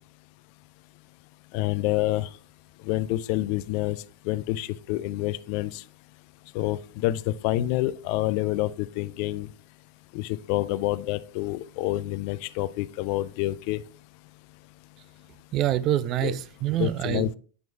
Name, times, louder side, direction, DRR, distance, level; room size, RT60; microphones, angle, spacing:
voice 1, 1.5-2.3 2.8-4.0 4.3-5.8 6.5-9.5 10.1-13.8 16.2-16.4 16.8-17.3, left 16 dB, 45° left, 0.3 m, -28 dB
voice 2, 15.5-17.4, right 13 dB, 35° right, 0.4 m, -26 dB
9.5 x 6.0 x 2.2 m
figure-of-eight pair, 90°, 0 cm